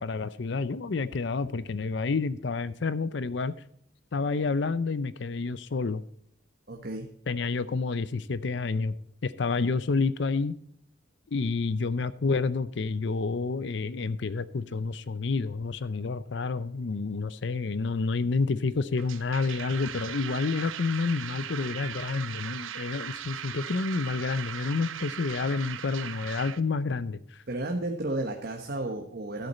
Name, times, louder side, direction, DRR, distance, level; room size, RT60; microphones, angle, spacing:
voice 1, 0.0-3.5 4.1-6.0 7.3-8.9 9.2-10.6 11.3-27.4, left 4 dB, 60° left, 16 dB, 0.5 m, -29 dB
voice 2, 6.7-7.1 27.5-29.5, right 2 dB, 55° right, 3 dB, 1.2 m, -32 dB
sound 1, 19.0-26.6, right 9 dB, 85° right, 0.7 m, -38 dB
13.0 x 8.3 x 4.2 m, 0.70 s
head